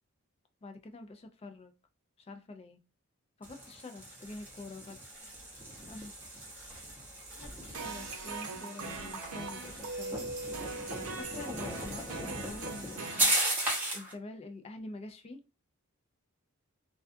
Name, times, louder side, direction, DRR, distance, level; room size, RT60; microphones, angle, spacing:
voice 1, 0.6-1.7 2.2-2.8 3.4-5.0 5.9-6.1 7.4-10.2 11.2-13.3 13.9-15.4, left 2 dB, 25° left, 5 dB, 0.3 m, -46 dB
sound 1, 3.4-14.1, right 1 dB, 10° right, 0.7 m, -37 dB
sound 2, 7.7-13.3, right 3 dB, 85° right, 0.6 m, -40 dB
2.3 x 2.2 x 2.5 m, 0.31 s
head